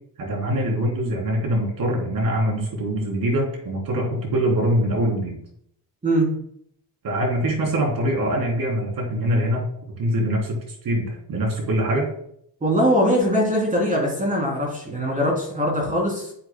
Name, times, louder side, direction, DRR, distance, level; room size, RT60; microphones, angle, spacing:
voice 1, 0.2-5.4 7.0-9.7 10.0-12.1, right 1 dB, 50° right, 0 dB, 3.4 m, -23 dB
voice 2, 12.6-16.3, equal, 20° right, -2 dB, 3.1 m, -21 dB
10.5 x 7.8 x 2.2 m, 0.70 s
cardioid pair, 130°, 43 cm